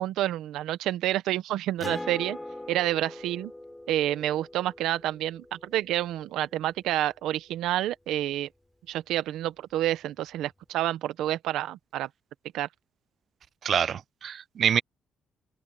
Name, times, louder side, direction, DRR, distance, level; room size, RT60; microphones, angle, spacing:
voice 1, 0.0-2.4 2.7-3.5 3.9-8.5 8.9-12.1 12.5-12.7, right 13 dB, 85° right, 1.0 m, -29 dB
Acoustic guitar, 1.8-6.8, left 1 dB, 10° left, 6.0 m, -41 dB
voice 2, 13.6-14.8, right 8 dB, 60° right, 0.5 m, -26 dB
cardioid pair, 90°, 0 cm